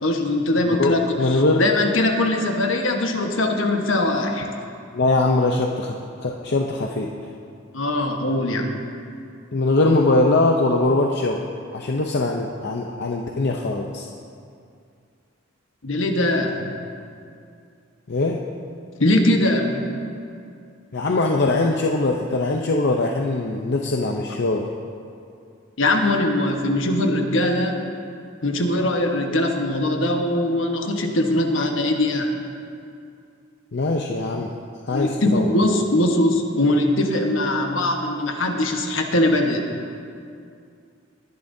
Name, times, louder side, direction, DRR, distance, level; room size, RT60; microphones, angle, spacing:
voice 1, 0.0-4.5 7.7-8.8 15.8-16.7 19.0-19.8 25.8-28.0 28.4-32.3 34.9-39.6, left 1 dB, 75° left, 3 dB, 1.2 m, -21 dB
voice 2, 0.7-1.6 4.9-6.0 6.2-7.1 9.5-11.4 11.7-14.1 18.1-18.4 20.9-24.7 33.7-34.5 34.9-35.7, left 2 dB, 55° left, 1 dB, 0.6 m, -21 dB
20.0 x 11.0 x 2.7 m, 2.4 s
head